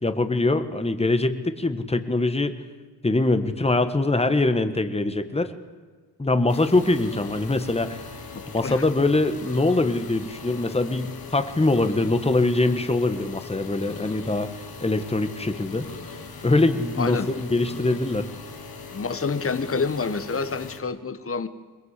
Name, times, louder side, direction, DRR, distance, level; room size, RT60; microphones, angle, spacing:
voice 1, 0.0-2.5 3.0-5.5 6.2-8.0 8.5-14.5 14.8-15.9 16.4-18.3, left 2 dB, 15° left, 9 dB, 1.5 m, -23 dB
sound 1, 6.5-20.8, left 4 dB, 65° left, 2.9 m, -40 dB
voice 2, 8.3-8.8 17.0-17.3 18.9-21.5, left 4 dB, 35° left, 11 dB, 1.4 m, -28 dB
22.0 x 21.5 x 8.3 m, 1.4 s
wide cardioid pair, 105°, 39 cm